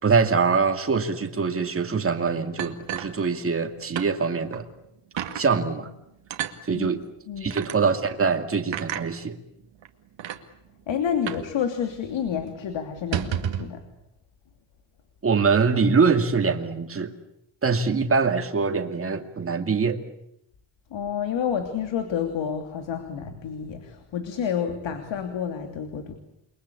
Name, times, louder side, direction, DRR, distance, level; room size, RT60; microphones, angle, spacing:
voice 1, 0.0-4.7 5.3-5.9 6.6-7.0 7.4-9.4 15.2-17.1 17.6-20.0, right 5 dB, 30° right, 6 dB, 2.4 m, -23 dB
sound 1, 2.6-3.7 4.0-4.1 4.5-4.6 5.2-5.5 6.3-6.6 7.5-7.8 8.7-9.1 9.8-9.9 10.2-10.4 11.3-11.5 11.8-11.9 12.2-12.4 13.0-13.7, right 10 dB, 75° right, 2.3 m, -31 dB
voice 2, 7.3-7.6 10.9-13.8 20.9-26.1, left 8 dB, 75° left, 7 dB, 3.0 m, -29 dB
29.5 x 23.0 x 8.5 m, 0.81 s
cardioid pair, 140°, 45 cm